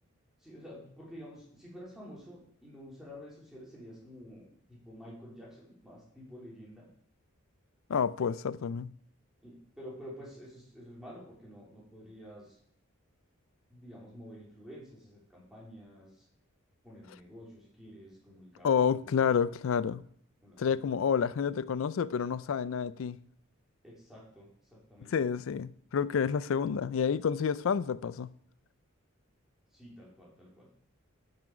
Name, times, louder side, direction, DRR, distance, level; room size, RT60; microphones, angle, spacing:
voice 1, 0.4-6.9 9.4-12.6 13.7-16.1 16.8-19.2 20.4-21.0 23.8-25.1 29.7-30.7, equal, ahead, 3.1 m, -50 dB
voice 2, 7.9-8.9 18.6-20.0 20.6-23.2 25.1-28.3, left 7 dB, 70° left, 0.4 m, -29 dB
9.2 x 6.1 x 4.9 m
head